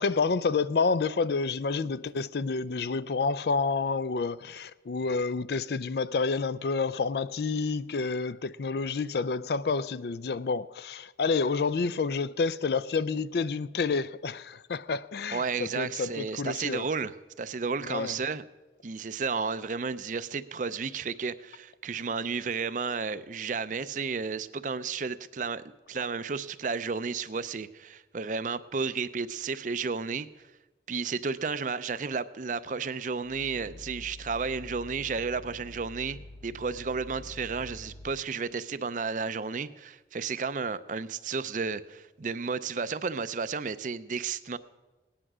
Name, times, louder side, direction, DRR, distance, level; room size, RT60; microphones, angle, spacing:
voice 1, 0.0-16.9 17.9-18.1, left 4 dB, 65° left, 0.4 m, -29 dB
voice 2, 15.3-18.4 18.8-30.3 30.9-44.6, right 5 dB, 45° right, 0.5 m, -32 dB
Growling, 33.2-38.2, left 1 dB, 25° left, 0.8 m, -46 dB
18.0 x 10.0 x 6.1 m
head